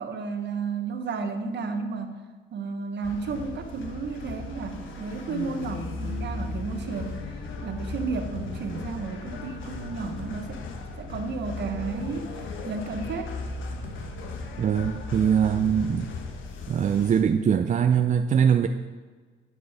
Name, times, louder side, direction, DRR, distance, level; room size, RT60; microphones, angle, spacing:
voice 1, 0.0-2.2 2.5-7.2 7.6-10.6 11.0-12.4 12.6-13.3, right 4 dB, 60° right, 6 dB, 1.2 m, -32 dB
sound 1, 3.0-17.2, left 3 dB, 80° left, 1.2 m, -36 dB
voice 2, 14.6-16.1 16.7-18.7, right 8 dB, 40° right, 7 dB, 0.4 m, -22 dB
9.8 x 6.2 x 5.0 m, 1.4 s
cardioid pair, 90°, 20 cm